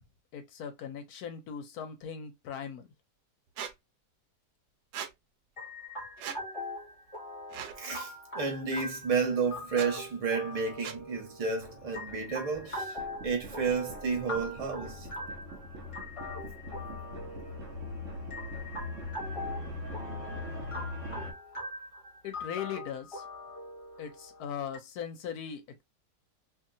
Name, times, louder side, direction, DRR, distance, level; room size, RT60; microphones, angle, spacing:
voice 1, 0.3-2.9 22.2-23.2 24.0-25.8, left 8 dB, 70° left, 1.0 m, -39 dB
Squeak, 3.6-3.7 4.9-5.1 6.2-6.4 7.5-7.8 8.8-8.9 9.7-9.9 10.8-11.0, right 8 dB, 85° right, 1.2 m, -39 dB
sound 1, 5.6-24.8, left 1 dB, 25° left, 0.8 m, -42 dB
voice 2, 7.8-13.0 13.2-15.1, right 5 dB, 30° right, 0.7 m, -31 dB
sound 2, 11.4-21.3, left 2 dB, 55° right, 1.0 m, -42 dB
2.8 x 2.8 x 2.6 m
omnidirectional pair, 1.9 m